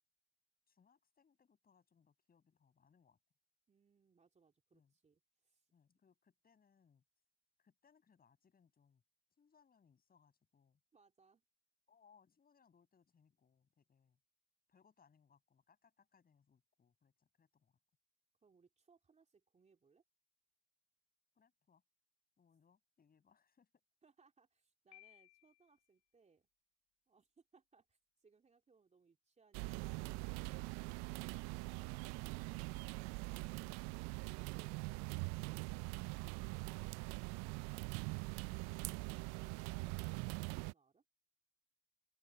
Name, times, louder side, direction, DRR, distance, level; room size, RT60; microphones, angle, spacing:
voice 1, 0.7-3.2 4.7-4.9 5.7-7.0 7.6-9.0 9.3-10.8 11.9-14.2 14.7-17.8 21.3-21.8 22.4-23.7 40.0-40.1, left 6 dB, 25° left, 7.9 m, -72 dB
voice 2, 3.7-5.7 10.9-11.4 18.4-20.0 24.0-26.5 27.1-31.5, right 5 dB, 20° right, 3.5 m, -71 dB
Piano, 24.9-25.9, left 27 dB, 60° left, 4.0 m, -63 dB
sound 1, 29.5-40.7, right 29 dB, 55° right, 0.5 m, -43 dB
hypercardioid pair, 90°, 33 cm